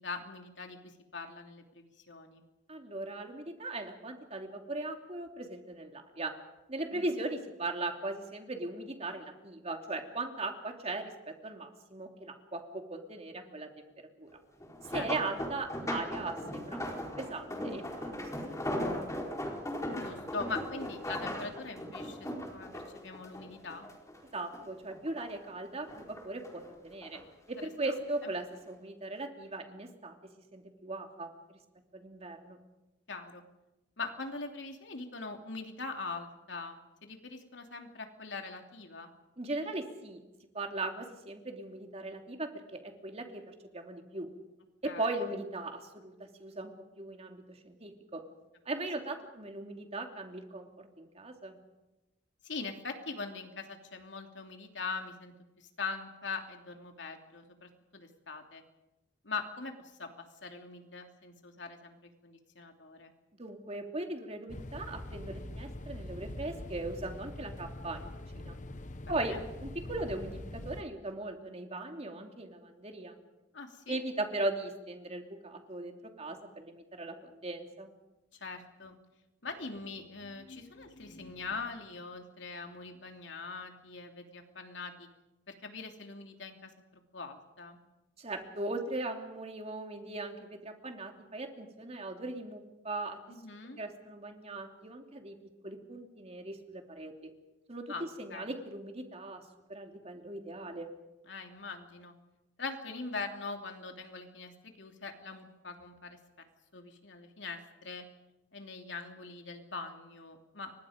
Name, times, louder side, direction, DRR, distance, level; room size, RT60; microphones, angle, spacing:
voice 1, 0.0-2.4 6.9-7.0 14.9-15.1 19.9-23.9 27.6-27.7 28.2-28.3 33.1-33.4 34.0-39.1 44.8-45.1 52.4-58.6 59.2-63.1 69.0-69.4 73.5-74.0 78.3-79.0 79.4-85.1 85.5-87.8 93.3-93.8 97.9-98.0 98.3-98.5 101.3-102.1 102.6-106.4 106.7-108.1 108.5-110.7, left 4 dB, 80° left, 4 dB, 3.1 m, -42 dB
voice 2, 2.7-6.3 6.7-13.9 14.2-14.3 14.9-16.8 17.2-18.6 19.0-19.1 24.3-27.2 27.5-31.6 31.9-32.6 39.4-40.2 40.5-44.3 44.8-48.2 48.6-51.6 63.4-68.6 69.1-73.2 73.9-77.9 88.2-93.2 93.8-95.4 95.6-97.3 97.7-99.4 99.7-100.9, right 2 dB, 35° right, 3 dB, 2.9 m, -39 dB
sound 1, 14.6-24.2 24.5-25.5 25.9-27.2 28.0-28.3 28.7-28.8, left 1 dB, 15° left, 4.4 m, -38 dB
sound 2, 64.5-70.8, left 1 dB, 45° left, 1.1 m, -43 dB
30.0 x 24.5 x 5.2 m, 1.0 s
head